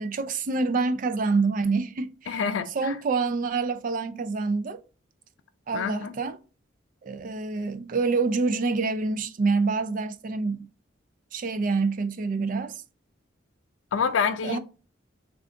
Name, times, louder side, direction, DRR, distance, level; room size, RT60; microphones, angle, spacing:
voice 1, 0.0-2.4 2.7-4.8 5.7-6.4 7.0-10.7 11.3-12.8 14.4-14.6, right 4 dB, 45° right, 0.4 m, -26 dB
voice 2, 2.3-3.0 5.7-6.1 13.9-14.6, left 6 dB, 85° left, 0.4 m, -27 dB
3.6 x 2.4 x 3.5 m
head